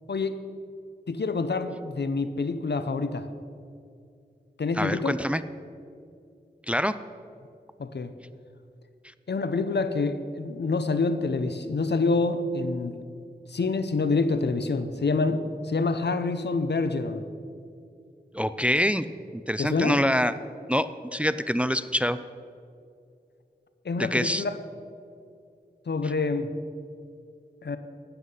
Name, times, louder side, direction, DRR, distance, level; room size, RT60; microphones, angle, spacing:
voice 1, 1.1-3.3 4.6-5.2 7.8-8.1 9.3-13.1 13.5-17.3 19.6-20.0 23.8-24.6 25.9-26.5 27.6-27.8, left 3 dB, 75° left, 11 dB, 0.7 m, -27 dB
voice 2, 4.8-5.4 6.7-7.0 18.3-19.1 19.3-20.3 20.7-22.2 24.0-24.4, equal, 5° right, 14 dB, 0.4 m, -25 dB
12.5 x 9.3 x 5.4 m, 2.5 s
wide cardioid pair, 45°, 18 cm